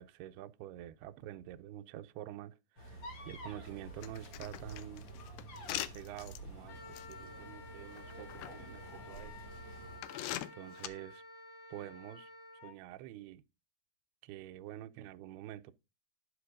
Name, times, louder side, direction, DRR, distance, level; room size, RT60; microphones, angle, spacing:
voice 1, 0.0-5.1 5.9-9.4 10.5-11.2 11.7-12.3 12.6-13.4 14.2-15.7, right 13 dB, 85° right, 2.6 m, -48 dB
sound 1, 2.8-10.0, right 1 dB, 40° left, 1.9 m, -49 dB
sound 2, 4.0-6.4 6.9-7.1 8.0-8.5 9.2-9.3 10.0-10.9, left 14 dB, 80° left, 2.3 m, -41 dB
Wind instrument woodwind instrument, 6.7-12.7, left 2 dB, 65° left, 2.5 m, -52 dB
10.0 x 5.2 x 5.0 m
omnidirectional pair, 4.5 m